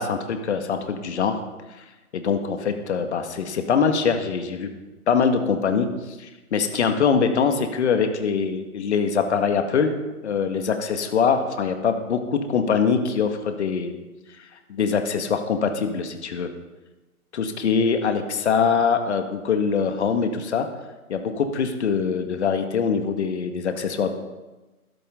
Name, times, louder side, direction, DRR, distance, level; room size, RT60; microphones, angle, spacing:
voice 1, 0.0-1.4 2.1-4.7 5.1-5.9 6.2-9.9 10.2-14.0 14.7-16.5 17.3-20.7 21.1-24.1, left 6 dB, 50° left, 6 dB, 2.1 m, -23 dB
21.5 x 13.0 x 3.9 m, 1.1 s
figure-of-eight pair, 145°, 44 cm